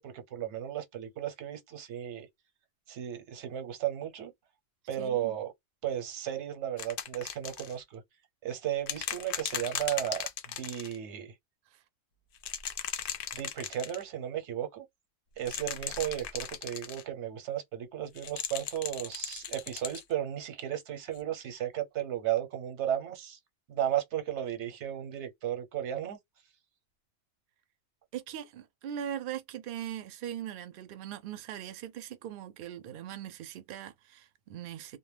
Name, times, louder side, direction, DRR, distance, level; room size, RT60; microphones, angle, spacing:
voice 1, 0.0-2.3 2.9-4.3 4.9-5.5 5.8-8.0 8.4-10.2 10.5-11.3 13.3-14.8 15.4-23.4 23.7-26.2, right 11 dB, 90° right, 1.0 m, -34 dB
voice 2, 5.0-5.3 11.7-11.8 28.1-35.0, right 10 dB, 60° right, 0.6 m, -40 dB
sound 1, 6.8-7.7 8.9-11.0 12.4-14.0 15.4-17.0 18.2-20.0 21.2-21.3, left 8 dB, 60° left, 0.7 m, -37 dB
2.1 x 2.1 x 3.2 m
omnidirectional pair, 1.1 m